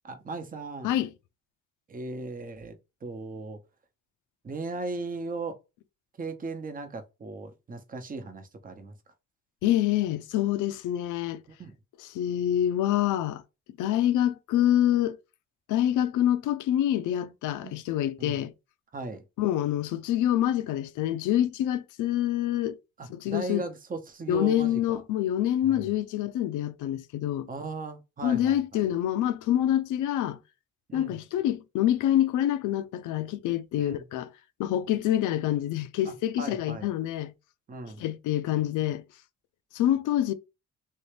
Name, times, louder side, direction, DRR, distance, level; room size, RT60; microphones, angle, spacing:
voice 1, 0.0-1.0 1.9-3.6 4.4-5.6 6.2-8.9 11.6-11.7 17.6-17.7 18.2-18.4 18.9-19.2 23.0-25.0 25.6-25.9 27.5-28.8 30.9-31.1 33.8-34.0 36.0-36.9 37.7-38.0, right 3 dB, 30° right, 0.8 m, -37 dB
voice 2, 9.6-11.4 12.0-13.4 13.8-15.2 15.7-18.5 19.4-22.8 23.1-23.6 24.3-27.5 28.2-30.4 30.9-34.3 34.6-37.3 38.0-39.0 39.7-40.3, left 12 dB, 85° left, 0.5 m, -26 dB
3.2 x 2.7 x 3.2 m
cardioid pair, 90°, 30 cm